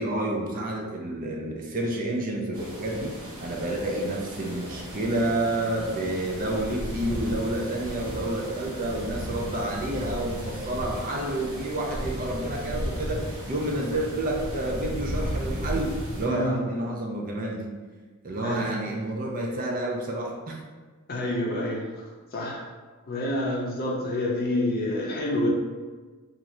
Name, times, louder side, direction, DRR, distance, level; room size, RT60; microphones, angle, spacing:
voice 1, 0.0-17.7 18.2-20.6, right 1 dB, 40° right, 0 dB, 0.4 m, -29 dB
sound 1, 2.5-16.3, equal, 75° right, 0.8 m, -35 dB
voice 2, 16.2-16.6 18.4-18.7 21.1-21.9 22.3-22.7 23.1-25.5, left 1 dB, 45° left, -3 dB, 0.6 m, -28 dB
2.6 x 2.4 x 3.1 m, 1.4 s
head